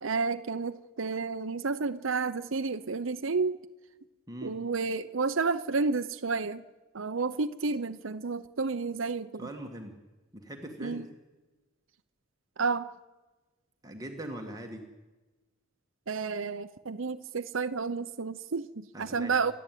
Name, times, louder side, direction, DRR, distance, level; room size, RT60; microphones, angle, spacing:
voice 1, 0.0-3.6 4.4-6.6 6.9-9.5 10.8-11.1 12.6-12.9 16.1-19.5, right 4 dB, 75° right, 0.8 m, -31 dB
voice 2, 9.4-9.9 10.3-11.1 13.8-14.8 18.9-19.4, right 1 dB, 20° right, 1.9 m, -41 dB
29.5 x 12.5 x 9.2 m
head